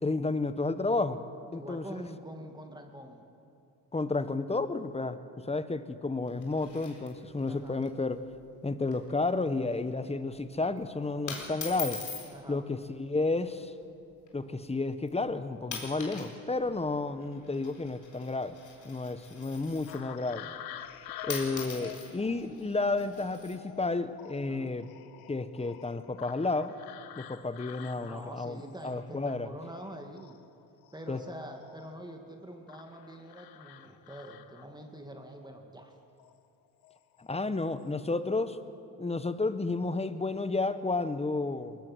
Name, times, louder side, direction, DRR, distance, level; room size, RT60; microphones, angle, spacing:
voice 1, 0.0-1.2 1.5-2.1 3.9-8.2 8.6-12.0 12.5-13.7 14.3-18.6 18.8-20.5 21.2-24.9 25.3-26.8 27.2-29.5 31.1-31.2 37.2-38.6 39.0-41.8, left 3 dB, 15° left, 12 dB, 1.2 m, -31 dB
voice 2, 1.5-3.3 7.5-7.9 12.3-12.6 24.3-24.7 28.0-30.4 30.9-36.0, right 1 dB, 10° right, 4 dB, 2.5 m, -45 dB
sound 1, 6.3-7.5 7.8-7.9 8.2-8.5 8.8-9.1 9.5-9.8 10.5-10.8 11.3-12.3 13.3-13.6 14.3-14.4 15.1-15.3 15.6-16.3 16.6-20.1 20.9-21.0 21.3-23.6, left 5 dB, 55° left, 4.4 m, -42 dB
sound 2, 19.9-29.9 30.2-32.1 32.7-34.9 36.1-36.4 36.8-37.3 37.6-37.9, left 12 dB, 75° left, 1.1 m, -48 dB
21.5 x 19.0 x 6.4 m, 2.5 s
supercardioid pair, 70°, 37 cm